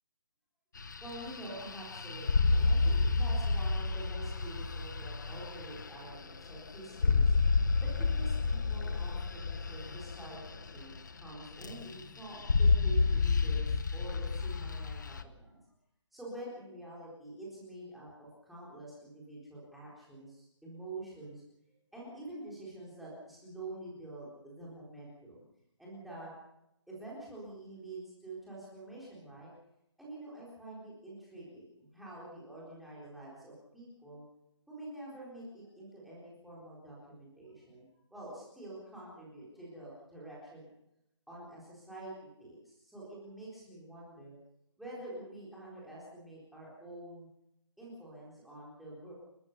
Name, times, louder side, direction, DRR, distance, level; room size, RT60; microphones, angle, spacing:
sound 1, 0.8-11.3 11.6-12.0 12.3-15.2, left 4 dB, 40° left, 1.3 m, -30 dB
voice 1, 1.0-7.3 7.8-15.6 16.1-21.4 21.9-25.4 25.8-26.3 26.9-29.5 30.0-34.3 34.7-40.7 41.3-44.4 44.8-47.3 47.8-49.1, right 1 dB, ahead, -7 dB, 4.0 m, -47 dB
30.0 x 14.5 x 6.7 m, 0.84 s
hypercardioid pair, 180°, 16 cm